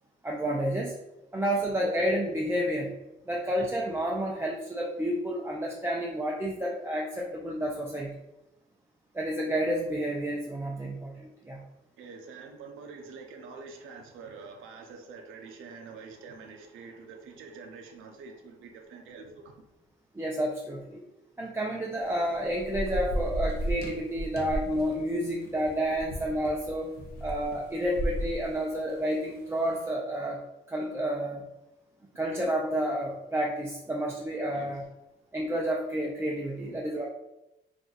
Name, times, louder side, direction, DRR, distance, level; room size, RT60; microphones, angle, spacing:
voice 1, 0.2-1.0 1.3-2.9 3.3-8.1 9.1-11.6 20.1-21.0 21.4-26.9 27.2-30.4 30.7-31.4 32.2-34.8 35.3-37.1, equal, 10° right, -2 dB, 0.4 m, -30 dB
voice 2, 12.0-19.6 34.5-34.7 36.7-36.8, right 4 dB, 85° right, 3 dB, 0.5 m, -46 dB
Thunder / Rain, 22.0-29.6, equal, 55° left, 0.7 m, -35 dB
2.5 x 2.3 x 3.9 m, 0.93 s
cardioid pair, 90°, 20 cm